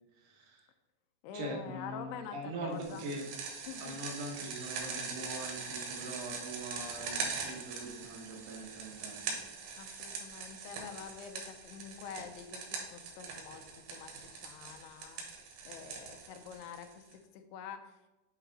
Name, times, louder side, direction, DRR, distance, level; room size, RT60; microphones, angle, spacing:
voice 1, 0.1-0.7 1.3-3.3 3.8-9.4, right 1 dB, 65° right, 0 dB, 2.7 m, -42 dB
voice 2, 1.2-3.1 3.7-4.0 9.8-18.1, left 7 dB, 85° left, 7 dB, 2.6 m, -47 dB
sound 1, 2.8-17.1, right 5 dB, 90° right, 3.3 m, -42 dB
8.3 x 4.0 x 3.9 m, 1.0 s
omnidirectional pair, 4.6 m